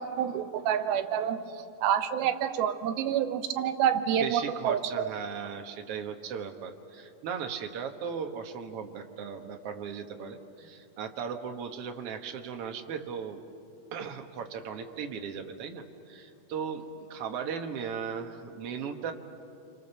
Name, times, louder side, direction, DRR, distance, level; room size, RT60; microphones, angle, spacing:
voice 1, 0.0-1.4 1.8-5.1, right 9 dB, 80° right, 9 dB, 2.8 m, -28 dB
voice 2, 4.2-13.4 13.9-19.1, right 6 dB, 60° right, 5 dB, 1.6 m, -37 dB
28.0 x 25.0 x 6.9 m, 2.7 s
omnidirectional pair, 4.3 m